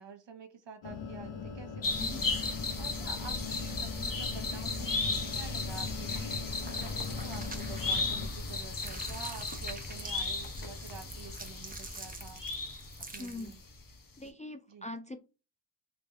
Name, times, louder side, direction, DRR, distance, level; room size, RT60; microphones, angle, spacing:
voice 1, 0.0-2.3 2.8-12.4 13.1-13.6 14.7-14.9, right 5 dB, 60° right, 1.1 m, -49 dB
sound 1, 0.8-8.3, left 6 dB, 65° left, 1.0 m, -41 dB
sound 2, 1.8-13.5 13.8-13.9, left 3 dB, 40° left, 1.0 m, -35 dB
sound 3, 6.4-8.4 8.7-13.6, right 3 dB, 15° right, 0.9 m, -47 dB
voice 2, 13.2-13.5 14.2-15.2, left 2 dB, 15° left, 0.4 m, -42 dB
3.5 x 3.0 x 3.3 m
cardioid pair, 55°, 49 cm